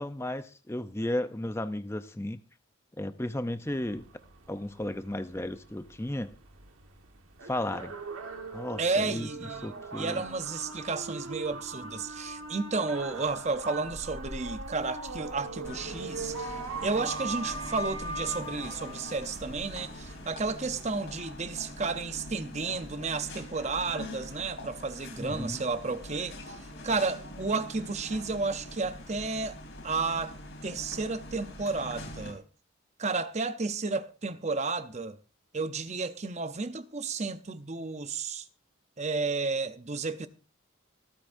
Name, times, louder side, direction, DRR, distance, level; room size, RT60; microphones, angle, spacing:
voice 1, 0.0-2.4 3.0-4.1 4.5-6.3 7.5-7.9 8.5-10.2 25.2-25.6, left 1 dB, 10° left, 0.5 m, -34 dB
sound 1, 3.7-22.2, right 2 dB, 90° right, 1.6 m, -41 dB
voice 2, 8.8-29.6 29.8-30.3 30.6-32.4 33.0-35.2 35.5-38.4 39.0-40.3, right 4 dB, 35° right, 0.7 m, -32 dB
sound 2, 15.6-32.3, left 1 dB, 65° left, 3.4 m, -44 dB
25.5 x 8.5 x 2.6 m
head